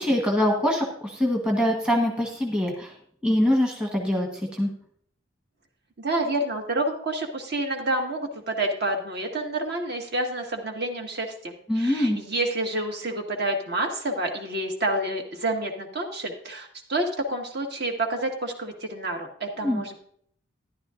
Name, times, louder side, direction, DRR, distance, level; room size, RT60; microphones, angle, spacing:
voice 1, 0.0-2.9 3.2-4.7 11.7-12.2 19.6-19.8, left 1 dB, 5° right, 0 dB, 1.1 m, -24 dB
voice 2, 6.0-20.0, right 1 dB, 55° right, 3 dB, 1.7 m, -29 dB
13.0 x 11.0 x 2.5 m, 0.62 s
head